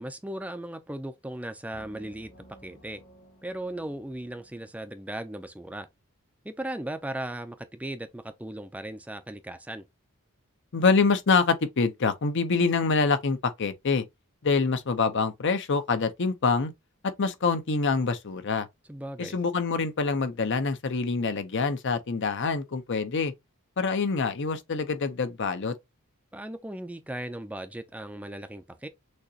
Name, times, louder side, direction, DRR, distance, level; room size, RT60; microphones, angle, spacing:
voice 1, 0.0-2.3 2.6-3.0 3.4-5.9 6.4-9.9 18.9-19.4 26.3-28.9, right 1 dB, 5° right, 0.4 m, -37 dB
sound 1, 1.7-5.3, right 1 dB, 80° left, 2.6 m, -55 dB
voice 2, 10.7-14.0 14.4-16.7 17.2-18.7 19.2-23.3 23.8-25.7, left 4 dB, 60° left, 0.7 m, -25 dB
6.3 x 2.9 x 2.8 m
head